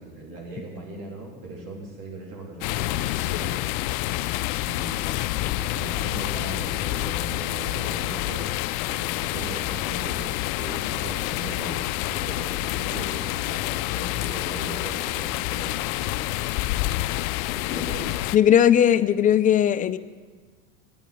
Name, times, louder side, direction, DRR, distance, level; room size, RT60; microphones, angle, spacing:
voice 1, 0.0-3.7 3.9-4.1 4.6-5.2 5.4-8.5 8.9-16.7 17.6-18.3, right 2 dB, 50° right, -2 dB, 3.2 m, -39 dB
sound 1, 2.6-18.4, left 17 dB, 75° left, 0.5 m, -28 dB
voice 2, 18.3-20.0, left 10 dB, 20° left, 12 dB, 0.3 m, -18 dB
9.5 x 8.9 x 8.7 m, 1.5 s
supercardioid pair, 110°, 42 cm